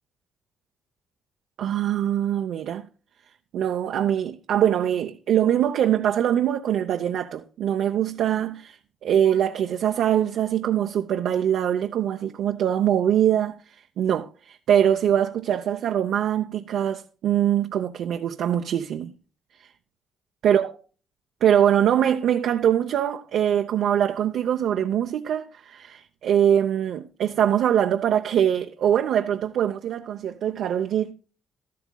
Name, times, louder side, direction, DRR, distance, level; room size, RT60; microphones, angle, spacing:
voice 1, 1.6-2.9 3.5-13.6 14.0-19.1 20.4-20.7 21.4-31.1, right 10 dB, 75° right, 0.7 m, -23 dB
13.0 x 12.5 x 2.3 m
cardioid pair, 90°, 0 cm